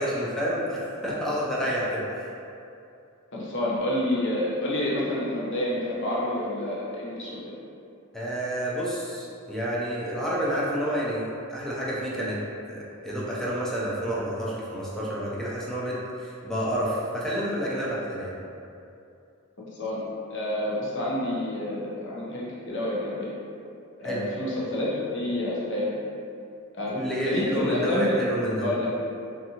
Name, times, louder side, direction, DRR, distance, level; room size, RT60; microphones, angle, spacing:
voice 1, 0.0-2.3 8.1-12.4 12.7-18.3 24.0-24.2 26.9-28.7, equal, ahead, -7 dB, 0.4 m, -29 dB
voice 2, 3.3-7.5 19.6-20.0 20.3-23.3 24.0-25.9 26.7-26.9 27.2-28.2 28.6-28.9, left 1 dB, 60° left, -6 dB, 0.7 m, -28 dB
2.6 x 2.5 x 2.8 m, 2.6 s
head